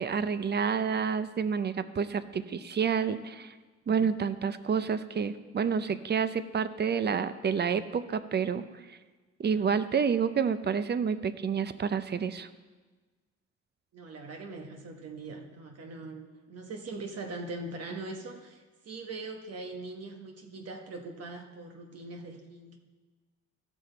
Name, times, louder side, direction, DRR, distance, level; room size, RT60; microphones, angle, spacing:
voice 1, 0.0-3.5 3.9-8.6 9.4-12.5, right 6 dB, 35° right, 12 dB, 0.6 m, -29 dB
voice 2, 13.9-22.8, right 3 dB, 55° right, 3 dB, 1.1 m, -41 dB
14.0 x 6.2 x 4.4 m, 1.3 s
cardioid pair, 90°, 30 cm